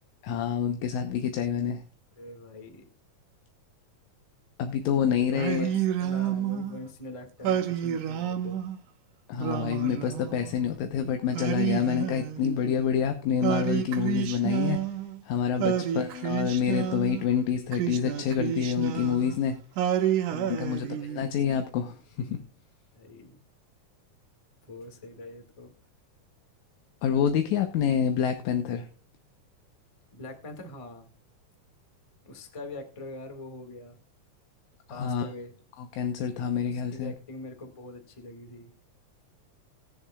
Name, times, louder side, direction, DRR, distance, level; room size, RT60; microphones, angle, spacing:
voice 1, 0.2-1.8 4.6-5.7 9.3-14.8 15.3-19.6 20.4-22.4 27.0-28.9 34.9-35.3 35.8-37.1, left 8 dB, 70° left, 6 dB, 2.1 m, -27 dB
voice 2, 2.1-2.8 5.3-8.6 15.6-15.9 20.3-20.8 22.9-23.4 24.7-25.7 30.1-31.1 32.2-34.0 34.9-35.6 36.6-38.7, left 2 dB, 15° left, 5 dB, 1.2 m, -43 dB
Singing, 5.3-6.8 7.4-8.8 9.4-10.7 11.3-12.9 13.4-15.2 15.6-17.2 17.7-19.4 19.8-21.4, right 10 dB, 80° right, 2.5 m, -29 dB
21.0 x 7.1 x 2.3 m, 0.33 s
omnidirectional pair, 3.6 m